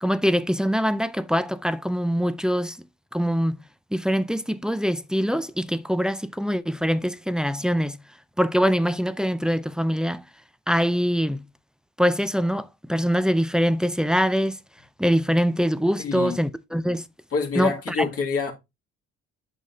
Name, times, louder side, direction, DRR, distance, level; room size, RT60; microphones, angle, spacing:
voice 1, 0.0-2.8 3.1-3.6 3.9-8.0 8.4-10.2 10.7-11.4 12.0-14.6 15.0-17.0 17.6-18.1, equal, ahead, 0.5 m, -23 dB
voice 2, 16.0-16.4 17.3-18.5, left 5 dB, 50° left, 2.2 m, -26 dB
8.4 x 6.3 x 2.8 m
cardioid pair, 90°, 30 cm